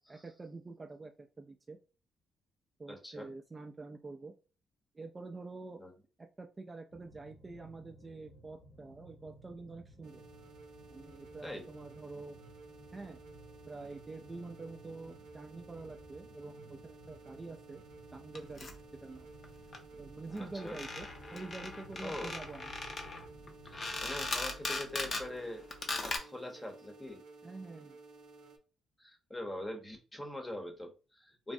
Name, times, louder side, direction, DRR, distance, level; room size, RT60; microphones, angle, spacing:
voice 1, 0.1-1.8 2.8-4.3 4.9-5.8 6.4-10.2 10.9-12.4 12.9-13.2 13.7-17.8 18.1-18.7 19.0-19.3 19.9-22.7 27.4-28.0, right 3 dB, 25° right, 0.3 m, -46 dB
voice 2, 2.9-3.3 5.8-5.9 11.4-11.7 20.4-20.8 22.0-22.3 23.6-25.7 25.9-27.2 29.0-31.5, left 1 dB, 15° left, 0.8 m, -43 dB
sound 1, 6.9-24.3, right 1 dB, 70° left, 1.2 m, -58 dB
sound 2, 10.0-28.6, right 3 dB, 85° right, 0.5 m, -55 dB
sound 3, 18.4-18.8 19.4-19.5 19.7-19.8 20.0-20.1 20.3-25.3 25.7-26.2, left 3 dB, 45° left, 0.6 m, -39 dB
3.3 x 2.0 x 2.6 m
cardioid pair, 90°, 0 cm